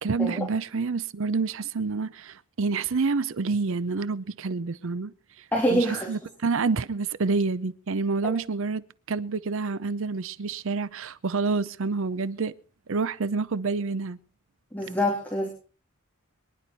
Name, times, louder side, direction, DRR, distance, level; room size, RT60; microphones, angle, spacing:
voice 1, 0.0-5.4 5.7-12.5 12.9-14.2, right 4 dB, 65° right, 0.6 m, -28 dB
voice 2, 5.5-6.1 8.2-8.3 14.7-15.5, equal, 10° left, 3.1 m, -25 dB
23.5 x 11.0 x 4.1 m
head